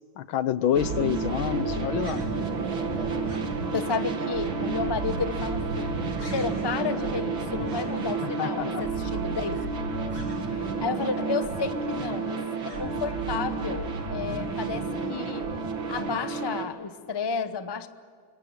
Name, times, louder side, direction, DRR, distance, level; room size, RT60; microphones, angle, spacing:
voice 1, 0.2-2.2 8.2-8.8, left 10 dB, 90° left, 14 dB, 1.7 m, -27 dB
sound 1, 0.7-16.6, right 4 dB, 80° right, 3.0 m, -30 dB
sound 2, 0.8-10.6 10.8-15.9, right 1 dB, 15° right, 3.3 m, -49 dB
voice 2, 3.7-10.1 10.5-15.5 15.9-17.9, left 5 dB, 35° left, 11 dB, 0.4 m, -32 dB
27.0 x 23.0 x 7.3 m, 2.1 s
omnidirectional pair, 2.2 m